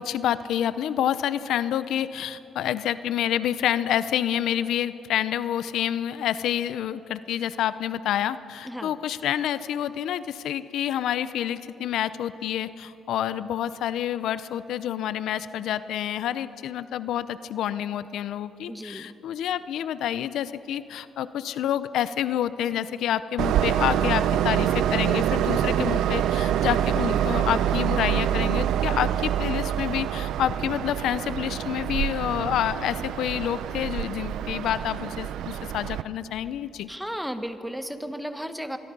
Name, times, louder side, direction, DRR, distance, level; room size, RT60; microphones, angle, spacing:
voice 1, 0.0-36.9, left 10 dB, 80° left, 14 dB, 0.6 m, -28 dB
voice 2, 18.7-19.1 25.8-26.0 36.9-38.8, equal, ahead, 8 dB, 1.5 m, -34 dB
Train, 23.4-36.0, right 10 dB, 80° right, 0.6 m, -26 dB
25.5 x 22.5 x 5.4 m, 2.9 s
cardioid pair, 90°, 0 cm